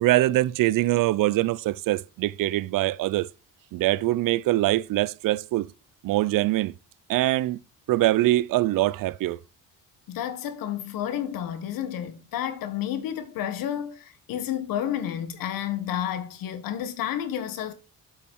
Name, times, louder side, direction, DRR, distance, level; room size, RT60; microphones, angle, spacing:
voice 1, 0.0-3.3 3.7-5.7 6.0-6.7 7.1-7.6 7.9-9.4, right 16 dB, 75° right, 0.5 m, -23 dB
voice 2, 10.1-17.7, left 10 dB, 85° left, 1.4 m, -31 dB
8.2 x 5.6 x 4.6 m
cardioid pair, 110°, 33 cm